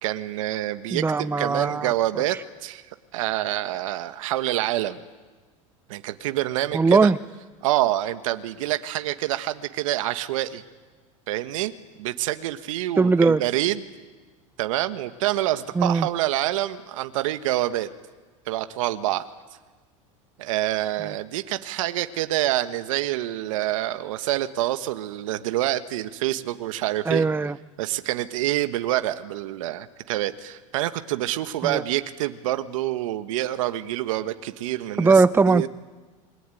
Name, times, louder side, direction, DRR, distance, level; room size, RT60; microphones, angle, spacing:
voice 1, 0.0-1.0 1.4-2.4 2.6-2.8 3.1-5.0 5.9-7.1 7.6-10.6 11.3-11.7 12.0-13.8 14.6-17.9 18.5-19.2 20.4-27.2 27.8-35.7, right 15 dB, 75° right, 10 dB, 1.5 m, -27 dB
voice 2, 0.9-1.9 6.7-7.2 13.0-13.4 15.7-16.1 27.0-27.6 31.6-31.8 35.0-35.7, right 4 dB, 15° right, 16 dB, 0.8 m, -19 dB
28.5 x 22.0 x 9.3 m, 1.3 s
hypercardioid pair, 100°, 17 cm